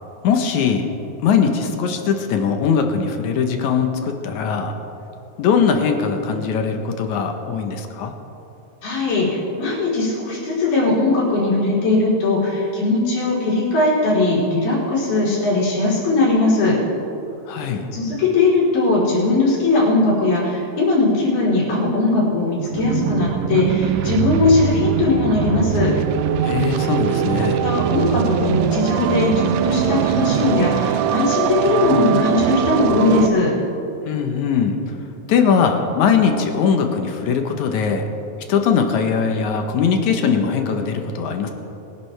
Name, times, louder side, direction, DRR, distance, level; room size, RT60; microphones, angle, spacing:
voice 1, 0.2-0.9 1.2-4.7 5.4-8.1 17.5-17.9 26.4-27.6 34.1-34.8 35.3-38.1 38.5-41.5, left 6 dB, 70° left, 5 dB, 2.0 m, -20 dB
voice 2, 8.8-16.7 17.9-25.9 27.6-33.5, left 2 dB, 85° left, -7 dB, 5.8 m, -19 dB
sound 1, 22.6-33.3, right 9 dB, 80° right, 1.9 m, -21 dB
23.0 x 11.0 x 3.3 m, 2.8 s
omnidirectional pair, 4.1 m